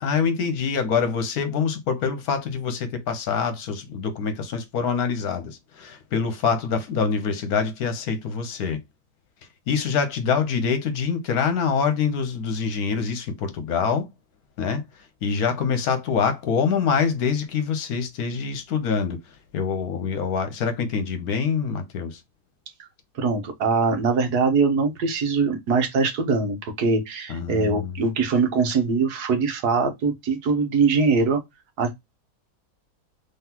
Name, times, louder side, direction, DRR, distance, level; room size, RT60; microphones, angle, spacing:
voice 1, 0.0-8.8 9.7-14.1 14.6-14.8 15.2-19.2 19.5-22.2 27.3-27.9, left 6 dB, 70° left, 1.2 m, -25 dB
voice 2, 23.1-31.4 31.8-31.9, right 4 dB, 70° right, 1.5 m, -22 dB
3.9 x 3.3 x 2.8 m
omnidirectional pair, 1.8 m